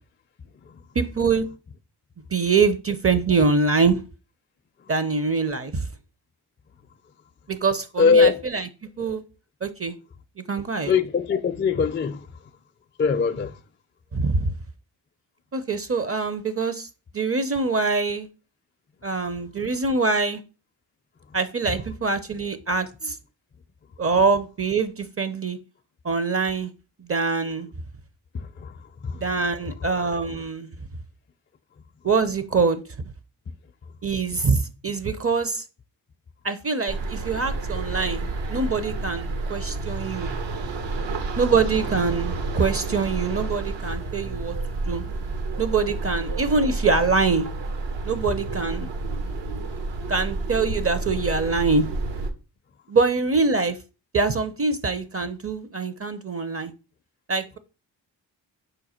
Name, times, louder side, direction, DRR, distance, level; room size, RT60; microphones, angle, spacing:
voice 1, 0.9-1.5 2.3-4.0 4.9-5.8 7.5-8.6 9.0-9.2 9.6-9.9 10.5-10.9 14.1-14.5 15.5-16.9 17.1-18.3 19.0-20.4 21.3-23.2 24.0-25.6 26.0-26.7 27.0-27.7 29.1-30.7 32.0-32.8 34.0-35.6 36.4-40.3 41.4-44.5 44.9-45.0 45.6-47.5 48.0-48.9 50.1-51.9 52.9-53.8 54.1-56.7 57.3-57.6, right 4 dB, 30° right, 0.6 m, -24 dB
voice 2, 8.0-8.4 10.9-12.3 13.0-13.6 28.3-29.3 29.7-29.8, left 5 dB, 25° left, 0.4 m, -22 dB
sound 1, 36.9-52.3, right 3 dB, 70° right, 0.9 m, -30 dB
5.1 x 2.2 x 4.3 m
supercardioid pair, 45°, 46 cm